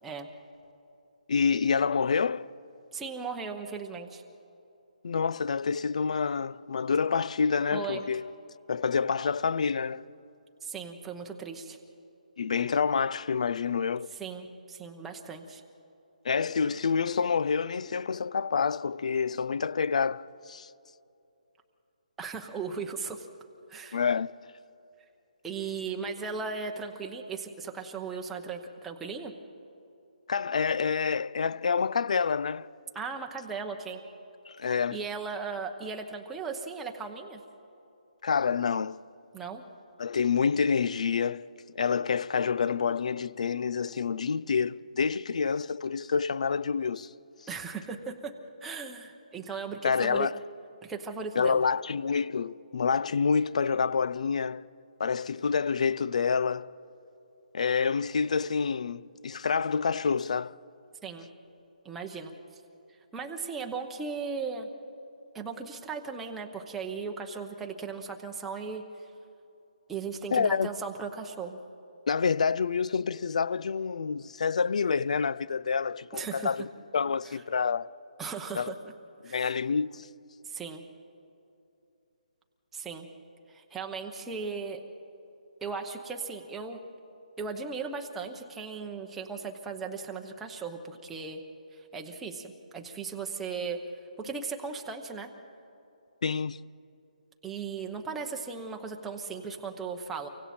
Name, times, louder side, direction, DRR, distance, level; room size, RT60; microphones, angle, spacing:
voice 1, 1.3-2.6 5.0-8.3 8.7-10.1 12.4-14.1 16.2-20.7 23.9-24.3 30.3-32.7 34.5-35.0 38.2-39.0 40.0-47.1 49.8-50.4 51.4-54.6 55.0-56.7 57.5-60.6 70.3-70.7 72.1-76.7 76.9-77.9 78.5-78.7 79.2-80.1 96.2-96.6, left 5 dB, 55° left, 0.5 m, -28 dB
voice 2, 2.9-4.2 7.7-8.1 10.6-11.8 14.2-15.6 22.2-23.3 23.7-24.0 25.4-29.3 32.9-34.0 34.7-37.4 39.3-39.6 47.5-48.3 48.6-50.3 50.8-51.6 61.0-61.3 61.8-62.3 63.1-64.7 65.3-68.8 69.9-71.6 76.1-76.5 78.2-78.7 79.2-79.5 80.4-80.8 82.7-83.1 83.5-84.8 85.6-86.8 87.4-91.4 91.9-93.8 94.2-95.3 97.4-100.3, right 5 dB, 5° right, 0.9 m, -37 dB
30.0 x 24.5 x 4.4 m
hypercardioid pair, 170°, 4 cm